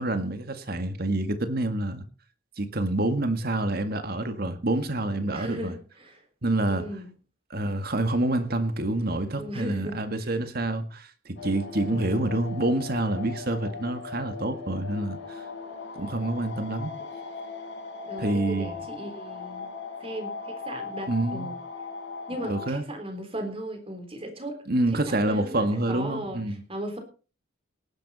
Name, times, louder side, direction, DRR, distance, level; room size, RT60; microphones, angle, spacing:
voice 1, 0.0-2.0 2.6-5.7 6.4-6.9 7.5-15.4 16.0-16.9 18.2-18.7 21.1-21.5 22.4-22.8 24.7-26.6, right 1 dB, 50° right, 9 dB, 1.9 m, -27 dB
voice 2, 5.3-6.2 6.7-7.1 9.4-10.4 11.9-12.4 18.1-21.6 22.3-24.6 24.9-26.4 26.7-27.0, right 1 dB, 30° right, 6 dB, 3.7 m, -37 dB
sound 1, 11.4-22.7, left 4 dB, 65° left, 4.8 m, -38 dB
18.5 x 11.0 x 4.2 m, 0.36 s
head